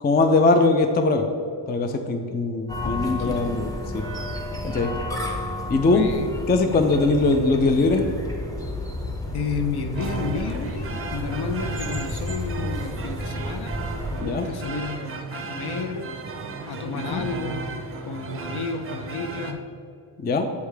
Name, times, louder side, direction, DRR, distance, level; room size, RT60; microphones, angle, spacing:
voice 1, 0.0-1.3 1.7-4.0 4.6-4.9 5.7-6.1 6.5-8.1 14.2-14.5 16.9-17.2 20.2-20.5, left 3 dB, 25° left, 6 dB, 0.3 m, -21 dB
sound 1, 2.7-14.2, left 1 dB, 10° left, 0.8 m, -32 dB
voice 2, 2.8-3.5 5.9-6.4 9.3-13.7 14.1-16.1 16.7-17.6 18.0-19.6, left 4 dB, 60° left, 7 dB, 0.7 m, -31 dB
sound 2, 9.9-19.5, right 4 dB, 30° right, 0.5 m, -35 dB
8.1 x 3.3 x 4.8 m, 2.5 s
wide cardioid pair, 130°, 45 cm